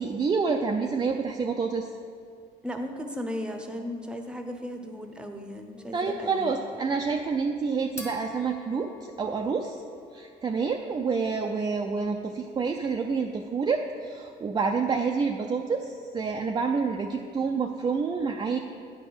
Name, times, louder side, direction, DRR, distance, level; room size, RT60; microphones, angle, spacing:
voice 1, 0.0-1.9 5.9-9.8 10.1-18.6, right 5 dB, 25° right, 3 dB, 0.4 m, -28 dB
voice 2, 2.6-6.5, equal, 5° right, 5 dB, 0.8 m, -36 dB
sound 1, 5.8-10.6, left 1 dB, 15° left, 1.2 m, -48 dB
9.5 x 4.3 x 6.7 m, 2.3 s
cardioid pair, 110°, 17 cm